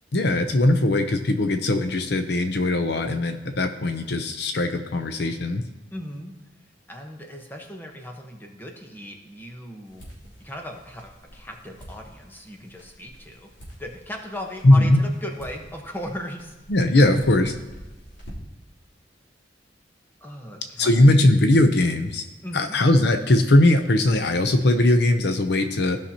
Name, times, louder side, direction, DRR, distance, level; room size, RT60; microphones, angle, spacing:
voice 1, 0.1-5.6 14.6-15.0 16.7-17.5 20.8-22.2 22.5-26.0, left 1 dB, 65° left, 7 dB, 0.6 m, -19 dB
voice 2, 5.9-6.3 6.9-10.1 10.4-13.5 13.8-16.5 20.2-21.0 22.4-22.8, left 1 dB, 10° left, 2 dB, 1.1 m, -37 dB
sound 1, 9.8-18.7, equal, 85° left, 3.2 m, -46 dB
16.0 x 5.8 x 2.9 m, 1.1 s
head